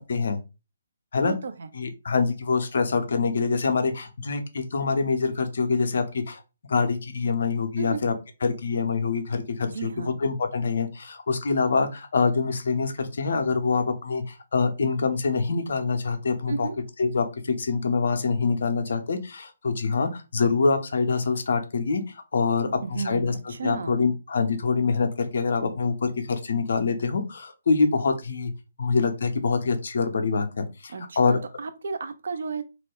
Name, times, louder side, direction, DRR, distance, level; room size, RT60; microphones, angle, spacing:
voice 1, 1.2-1.7 7.8-8.0 9.7-10.2 16.5-16.7 22.6-24.0 30.9-32.6, right 4 dB, 55° right, 9 dB, 0.4 m, -33 dB
voice 2, 1.7-6.4 6.7-8.1 8.4-9.9 10.2-16.7 17.0-22.0 22.3-23.3 23.6-28.5 28.8-31.4, left 4 dB, 55° left, 7 dB, 0.5 m, -25 dB
2.4 x 2.1 x 3.5 m, 0.29 s
figure-of-eight pair, 135°, 0 cm